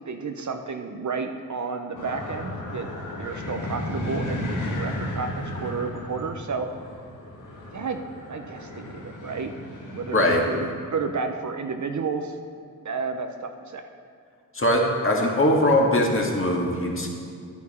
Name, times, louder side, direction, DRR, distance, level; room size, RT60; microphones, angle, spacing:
voice 1, 0.1-2.9 3.2-6.7 7.7-8.0 8.3-9.5 9.9-12.4 12.8-13.8, right 4 dB, 50° right, 6 dB, 0.7 m, -31 dB
sound 1, 1.9-10.7, left 1 dB, 55° left, 1.6 m, -34 dB
voice 2, 10.1-10.4 14.5-17.1, left 1 dB, 35° left, -1 dB, 1.8 m, -21 dB
11.0 x 8.3 x 4.3 m, 2.4 s
cardioid pair, 65°, 37 cm